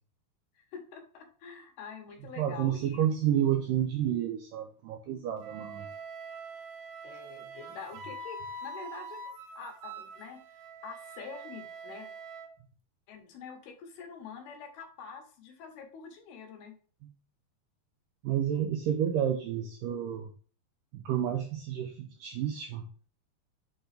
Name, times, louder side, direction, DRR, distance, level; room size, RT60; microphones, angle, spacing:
voice 1, 0.6-3.1 7.0-10.4 10.8-12.1 13.1-16.7, left 6 dB, 75° left, 3 dB, 3.2 m, -46 dB
voice 2, 2.4-5.9 18.2-20.3 20.9-22.9, right 10 dB, 85° right, 3 dB, 1.9 m, -30 dB
Wind instrument woodwind instrument, 5.4-12.5, right 3 dB, 70° right, 1.8 m, -44 dB
8.1 x 3.9 x 3.3 m, 0.40 s
omnidirectional pair, 4.6 m